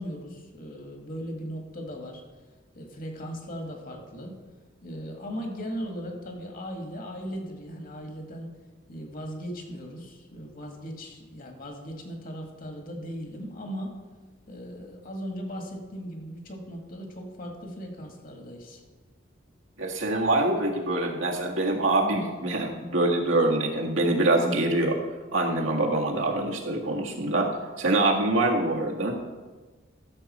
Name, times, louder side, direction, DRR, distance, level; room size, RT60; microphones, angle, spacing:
voice 1, 0.0-2.2 2.8-4.4 4.8-8.5 8.9-13.9 14.5-18.8, equal, 45° left, 2 dB, 1.8 m, -38 dB
voice 2, 19.8-25.0 25.3-27.5 27.8-29.2, right 2 dB, 85° right, 0 dB, 1.8 m, -24 dB
13.0 x 7.1 x 4.3 m, 1.3 s
head